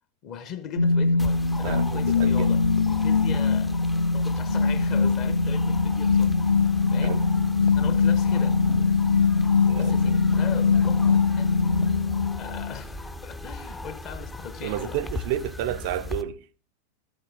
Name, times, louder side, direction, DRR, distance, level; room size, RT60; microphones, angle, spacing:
voice 1, 0.2-6.6 6.9-7.2 7.7-8.6 9.8-11.6 12.4-15.0, left 8 dB, 35° left, 1.0 m, -39 dB
sound 1, 0.7-12.7, left 4 dB, 80° left, 0.4 m, -22 dB
sound 2, 1.2-16.2, left 2 dB, 10° left, 0.5 m, -38 dB
voice 2, 1.6-2.5 7.0-7.2 9.6-10.2 14.6-16.5, right 12 dB, 50° right, 0.4 m, -31 dB
12.5 x 7.0 x 3.8 m
figure-of-eight pair, 90°, 0 cm